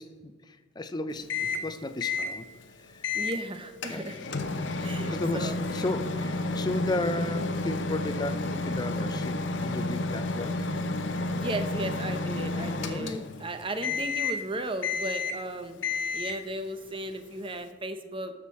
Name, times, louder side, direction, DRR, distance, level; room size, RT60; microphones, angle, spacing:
voice 1, 0.0-3.1 3.9-4.0 5.1-10.6 12.9-13.2 13.8-14.0, left 2 dB, 20° left, 10 dB, 0.5 m, -34 dB
Microwave oven, 1.3-1.7 2.0-2.3 3.0-3.4 3.8-13.5 13.8-14.5 14.8-15.5 15.8-16.5, left 3 dB, 65° left, 0.8 m, -31 dB
voice 2, 3.1-4.2 4.8-5.6 11.3-15.8 16.1-18.3, right 1 dB, 25° right, 9 dB, 0.7 m, -35 dB
13.0 x 6.5 x 4.2 m, 1.4 s
head